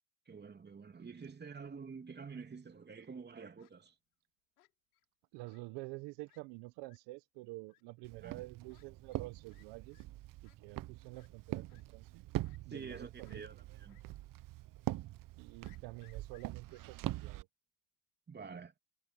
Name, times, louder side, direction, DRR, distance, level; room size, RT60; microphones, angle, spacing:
voice 1, 0.3-4.0 8.2-8.4 12.7-14.0 18.3-18.7, right 5 dB, 25° right, 3.0 m, -48 dB
Fowl, 2.7-3.1 3.6-3.7 4.6-5.0 5.4-5.6 5.9-6.0 6.3-6.4 6.8-7.0 7.7-7.8 8.7-8.8 9.1-9.2 9.5-9.7 9.9-10.0 10.4-10.6 11.1-11.3 11.7-11.8 12.4-13.0 13.2-13.4 13.9-14.0 14.4-14.5 15.6-16.8, left 17 dB, 90° left, 4.3 m, -68 dB
voice 2, 5.3-10.0 10.4-12.2 12.7-13.4 15.4-17.5, right 22 dB, 65° right, 1.5 m, -49 dB
Walk footsteps, 8.0-17.4, right 15 dB, 50° right, 1.2 m, -43 dB
supercardioid pair, 90°, 43 cm